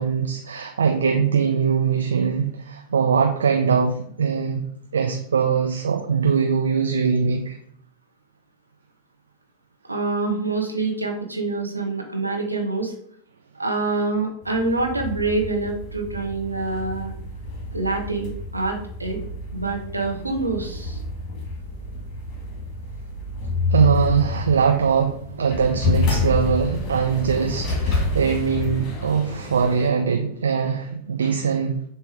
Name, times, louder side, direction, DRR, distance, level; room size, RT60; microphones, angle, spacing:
voice 1, 0.0-4.6 4.9-7.5 23.7-31.8, right 6 dB, 70° right, 2 dB, 0.7 m, -21 dB
voice 2, 9.9-12.9 13.6-17.1 17.7-19.2 19.5-21.0, right 3 dB, 85° right, 2 dB, 1.1 m, -26 dB
sound 1, 14.4-29.9, left 3 dB, 30° left, 1.7 m, -29 dB
6.8 x 3.0 x 5.0 m, 0.63 s
figure-of-eight pair, 90°, 0 cm